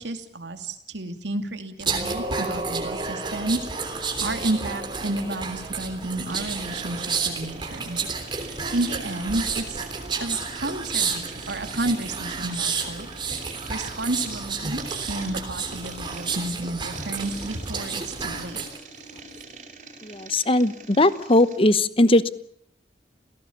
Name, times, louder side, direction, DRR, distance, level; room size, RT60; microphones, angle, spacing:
voice 1, 0.0-8.5 8.7-9.9 10.2-13.1 13.3-18.6, right 1 dB, 90° right, 7 dB, 2.7 m, -31 dB
sound 1, 1.8-18.8 19.2-19.4, right 4 dB, 25° right, 3.4 m, -31 dB
sound 2, 6.3-21.7, right 3 dB, 45° right, 5.2 m, -44 dB
voice 2, 20.0-22.3, left 1 dB, 30° left, 15 dB, 1.0 m, -19 dB
28.5 x 17.5 x 7.2 m, 0.72 s
head